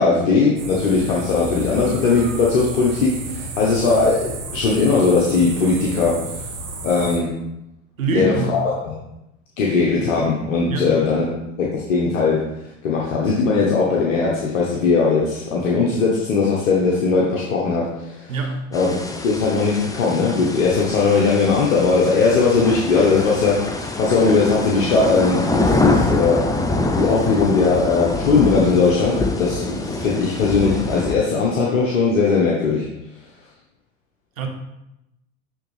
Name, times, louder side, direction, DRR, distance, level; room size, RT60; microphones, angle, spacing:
voice 1, 0.0-6.1 6.8-7.3 8.1-8.9 9.6-11.3 11.6-12.4 12.8-18.4 18.7-26.4 27.0-32.8, left 4 dB, 70° left, -3 dB, 1.3 m, -19 dB
sound 1, 0.6-7.2, right 2 dB, 40° right, 1.7 m, -32 dB
voice 2, 8.0-8.6 10.7-10.9 18.3-18.6 34.4-34.5, right 4 dB, 85° right, 4 dB, 1.1 m, -24 dB
sound 2, 18.7-31.1, left 2 dB, 10° left, 0.7 m, -25 dB
9.8 x 3.7 x 3.3 m, 0.88 s
hypercardioid pair, 85°, 40 cm